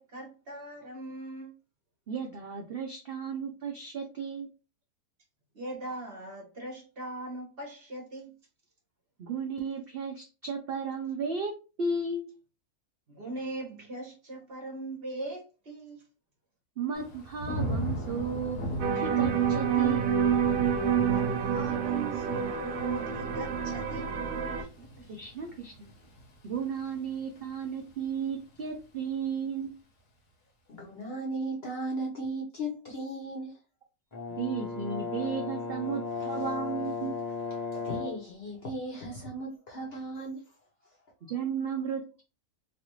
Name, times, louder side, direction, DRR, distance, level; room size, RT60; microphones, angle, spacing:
voice 1, 0.0-1.5 5.5-8.3 13.1-16.0 21.0-24.1 24.5-25.1, right 1 dB, 45° right, 1.0 m, -40 dB
voice 2, 2.1-4.5 9.2-11.5 11.8-12.3 16.8-20.1 25.1-25.9 26.4-29.7 34.4-37.2 41.3-42.2, right 5 dB, 65° right, 0.6 m, -34 dB
Thunder / Rain, 16.9-27.9 28.3-28.8, right 1 dB, 85° left, 1.3 m, -39 dB
sound 1, 18.8-24.6, right 8 dB, 80° right, 1.1 m, -28 dB
voice 3, 30.7-33.6 36.1-36.5 37.5-40.4 40.8-40.9, right 1 dB, 50° left, 0.8 m, -37 dB
Brass instrument, 34.1-38.3, left 4 dB, 25° left, 0.4 m, -35 dB
3.2 x 2.5 x 3.0 m
omnidirectional pair, 1.6 m